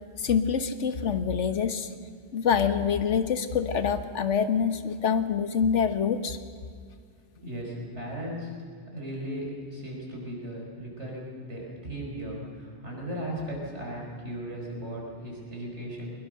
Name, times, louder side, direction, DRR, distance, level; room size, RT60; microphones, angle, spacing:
voice 1, 0.2-1.9 2.3-6.4, left 7 dB, 80° left, 10 dB, 1.4 m, -26 dB
voice 2, 7.4-8.5 8.9-16.1, equal, 75° right, -2 dB, 5.7 m, -36 dB
22.0 x 21.5 x 6.5 m, 2.2 s
omnidirectional pair, 1.2 m